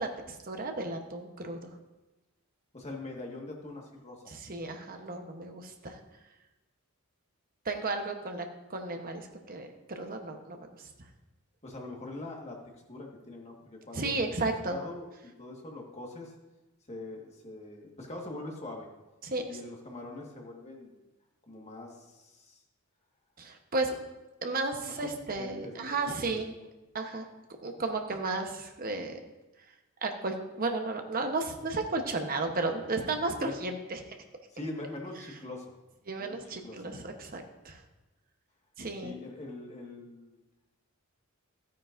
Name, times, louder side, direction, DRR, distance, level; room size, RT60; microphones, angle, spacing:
voice 1, 0.0-1.7 4.3-6.0 7.6-8.4 8.7-10.9 13.9-14.8 19.2-19.6 23.4-23.9 24.4-26.5 26.9-27.2 27.6-29.2 30.0-34.0 36.1-37.8 38.8-39.1, right 3 dB, 40° right, 4 dB, 1.0 m, -34 dB
voice 2, 2.7-4.2 11.6-12.6 12.9-14.3 14.7-15.1 15.4-16.3 16.9-18.9 19.4-21.0 21.5-22.6 25.0-25.1 25.4-26.7 33.4-33.6 34.5-35.7 36.2-36.9 39.0-40.4, left 2 dB, 30° left, 0 dB, 1.6 m, -43 dB
13.5 x 9.5 x 2.6 m, 1.1 s
head